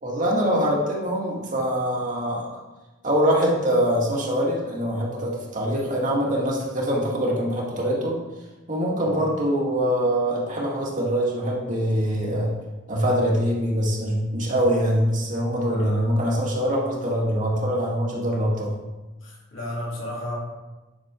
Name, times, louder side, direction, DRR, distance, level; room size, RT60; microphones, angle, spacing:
voice 1, 0.0-2.5 3.0-8.2 8.7-12.5 12.9-18.7, equal, 40° right, -3 dB, 2.1 m, -23 dB
voice 2, 15.6-16.0 19.2-20.4, left 1 dB, 85° left, -5 dB, 3.2 m, -34 dB
10.5 x 6.5 x 3.8 m, 1.1 s
head